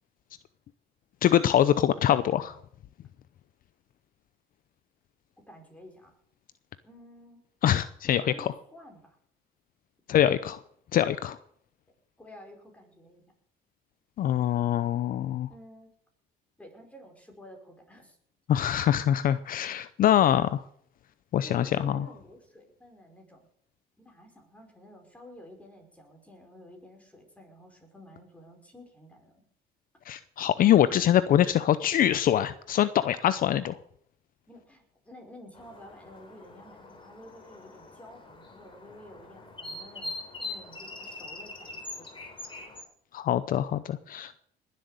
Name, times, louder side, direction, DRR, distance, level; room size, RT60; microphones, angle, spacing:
voice 1, 1.2-2.6 7.6-8.5 10.1-10.6 10.9-11.4 14.2-15.5 18.5-20.6 21.3-22.1 30.1-33.8 43.1-44.4, left 11 dB, 55° left, 14 dB, 0.7 m, -24 dB
voice 2, 5.4-6.2 6.8-7.4 8.2-9.2 12.2-13.2 15.5-15.9 16.6-18.2 21.4-23.5 24.0-29.4 34.5-40.1 40.4-42.3, left 1 dB, 10° left, 2 dB, 5.3 m, -51 dB
sound 1, 35.5-42.8, left 2 dB, 30° left, 3.5 m, -43 dB
20.5 x 7.8 x 6.7 m, 0.66 s
cardioid pair, 110°, 17 cm